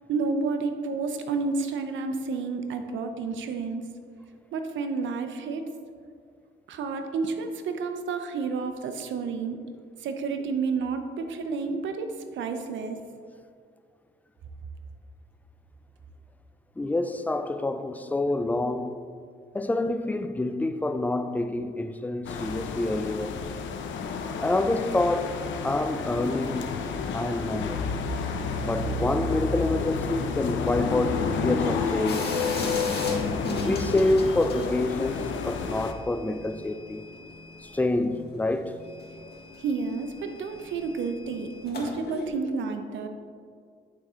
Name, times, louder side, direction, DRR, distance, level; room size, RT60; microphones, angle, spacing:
voice 1, 0.1-3.8 4.5-5.6 6.7-9.6 10.0-13.0 39.6-43.1, right 4 dB, 75° right, 0.6 m, -30 dB
voice 2, 16.8-19.0 19.5-23.3 24.4-25.4 25.6-26.8 27.1-27.8 28.6-32.3 33.2-33.3 33.6-37.0 37.6-38.8, left 2 dB, 10° left, 0.3 m, -27 dB
sound 1, 22.2-35.9, left 5 dB, 70° left, 0.6 m, -31 dB
sound 2, 32.1-34.7 35.0-38.2 38.5-42.3, left 4 dB, 55° left, 1.5 m, -35 dB
8.8 x 3.6 x 4.3 m
cardioid pair, 90°, 20 cm